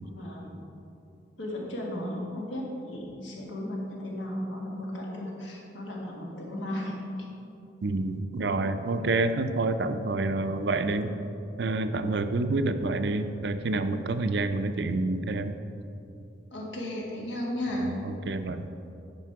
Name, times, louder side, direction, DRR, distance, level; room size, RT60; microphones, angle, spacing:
voice 1, 0.0-0.6 1.4-7.0 16.5-18.0, left 1 dB, 85° left, -2 dB, 1.7 m, -35 dB
voice 2, 7.8-11.1 11.6-15.5 17.8-18.6, right 2 dB, 65° right, 9 dB, 0.4 m, -28 dB
9.4 x 5.5 x 4.6 m, 2.8 s
head